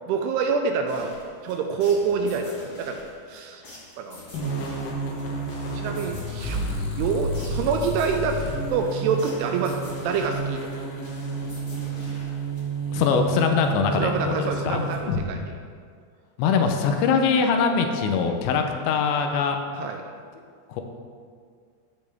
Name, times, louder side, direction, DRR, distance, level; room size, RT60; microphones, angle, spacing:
voice 1, 0.1-1.1 1.4-3.0 3.3-3.6 4.0-4.6 5.7-8.4 8.7-10.6 14.0-15.6 19.7-20.1, right 5 dB, 80° right, 4 dB, 2.5 m, -27 dB
sound 1, 0.9-13.0, left 1 dB, 40° left, 2.1 m, -46 dB
sound 2, 4.3-15.2, right 2 dB, 65° left, 2.4 m, -30 dB
voice 2, 12.9-14.8 16.4-19.6 20.7-20.8, left 6 dB, 85° left, 5 dB, 3.1 m, -22 dB
15.0 x 5.3 x 3.5 m, 2.1 s
omnidirectional pair, 5.0 m